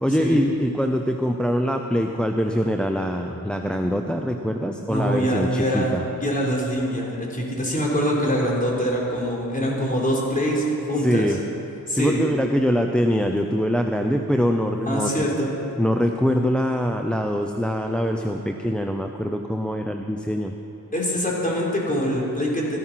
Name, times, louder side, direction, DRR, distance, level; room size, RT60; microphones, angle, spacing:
voice 1, 0.0-6.0 11.0-11.4 11.9-15.3 15.8-20.5, equal, 5° left, 4 dB, 0.7 m, -23 dB
voice 2, 4.9-5.9 6.2-11.4 11.9-12.2 14.9-15.5 20.9-22.8, equal, 25° left, -3 dB, 3.9 m, -24 dB
14.5 x 12.5 x 5.9 m, 2.8 s
cardioid pair, 70°, 36 cm